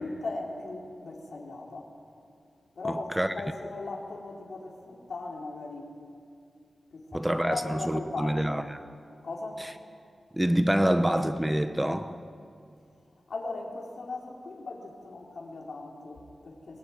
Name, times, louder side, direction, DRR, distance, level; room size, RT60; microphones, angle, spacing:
voice 1, 0.0-1.9 2.7-3.1 3.3-5.9 6.9-8.6 9.2-9.6 13.3-16.8, left 3 dB, 65° left, -2 dB, 4.8 m, -38 dB
voice 2, 2.9-3.3 7.1-8.9 9.6-9.7 10.3-12.2, right 1 dB, 10° right, 9 dB, 0.8 m, -27 dB
23.0 x 19.5 x 9.8 m, 2.4 s
wide cardioid pair, 135°, 0 cm